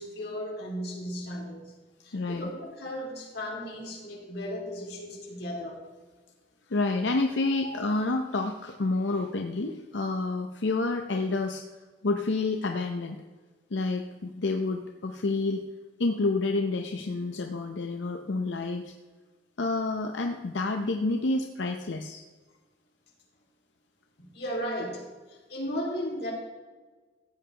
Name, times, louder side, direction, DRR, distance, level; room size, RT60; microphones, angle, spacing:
voice 1, 0.0-1.7 2.0-5.8 7.6-7.7 24.2-26.3, equal, 60° left, -2 dB, 3.0 m, -35 dB
voice 2, 2.1-2.5 6.7-11.6 12.0-13.2 13.7-15.6 16.0-18.9 19.6-22.2, left 3 dB, 85° left, 4 dB, 0.7 m, -29 dB
15.0 x 8.8 x 3.4 m, 1.3 s
head